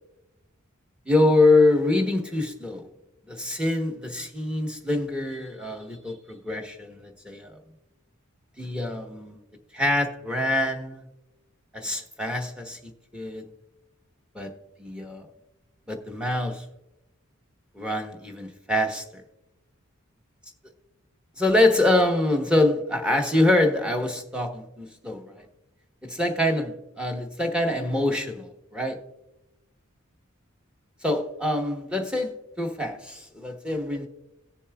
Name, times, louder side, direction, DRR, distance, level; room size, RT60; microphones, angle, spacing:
voice 1, 1.1-2.9 3.3-7.6 8.6-9.4 9.7-11.0 11.7-12.8 13.1-13.5 14.3-14.5 14.8-15.2 15.9-16.6 17.7-19.2 21.4-25.4 26.1-29.0 31.0-34.1, left 2 dB, 5° right, 1.1 m, -25 dB
18.0 x 7.1 x 2.3 m
head